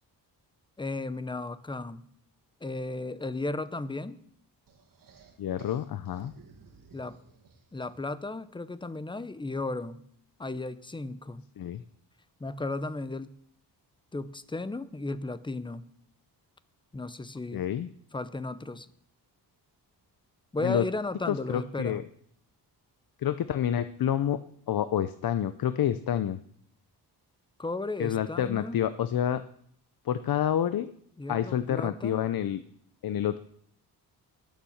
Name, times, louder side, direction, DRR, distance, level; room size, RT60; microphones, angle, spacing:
voice 1, 0.8-2.0 2.6-4.2 6.9-7.2 7.7-10.0 10.4-11.4 12.4-13.3 14.1-15.8 16.9-17.7 18.1-18.9 20.5-22.0 27.6-28.8 31.2-32.2, left 2 dB, 10° left, 14 dB, 0.7 m, -35 dB
sound 1, 4.7-8.2, right 5 dB, 55° right, 2.0 m, -55 dB
voice 2, 5.4-6.3 11.6-11.8 17.5-17.9 20.6-20.8 21.3-22.0 23.2-24.4 24.7-26.4 28.0-29.4 30.0-30.9 31.3-32.6 33.0-33.4, left 10 dB, 60° left, 12 dB, 0.7 m, -28 dB
21.0 x 7.4 x 7.2 m, 0.65 s
wide cardioid pair, 150°, 41 cm